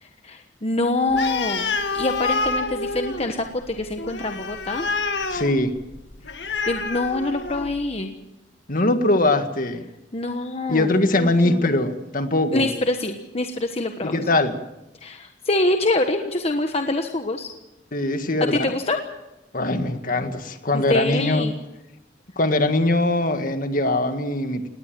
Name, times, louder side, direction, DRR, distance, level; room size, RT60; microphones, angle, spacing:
voice 1, 0.0-4.9 6.4-8.1 10.1-11.7 12.5-14.2 15.0-17.5 18.5-19.0 20.7-21.5, left 2 dB, 35° left, 5 dB, 1.3 m, -25 dB
Animal, 1.1-7.9, left 3 dB, 75° left, 1.9 m, -28 dB
voice 2, 5.3-5.7 8.7-9.8 10.7-12.7 14.0-14.5 17.9-18.6 19.5-21.5 22.4-24.7, left 2 dB, 50° left, 8 dB, 1.8 m, -21 dB
19.5 x 18.5 x 7.6 m, 0.93 s
head